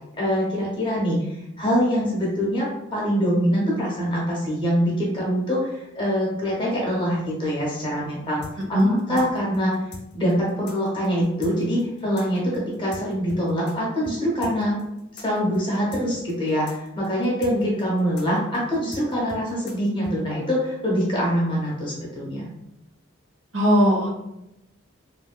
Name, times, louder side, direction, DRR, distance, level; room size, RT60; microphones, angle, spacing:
voice 1, 0.2-8.4 9.1-9.8 10.1-14.8 15.1-22.5, equal, 25° left, -4 dB, 0.7 m, -24 dB
sound 1, 8.4-13.8 14.0-14.2 14.4-20.2, left 2 dB, 55° left, 0.6 m, -42 dB
voice 2, 8.7-9.2 23.5-24.1, equal, 75° right, -1 dB, 0.8 m, -19 dB
3.0 x 2.7 x 2.2 m, 0.89 s
head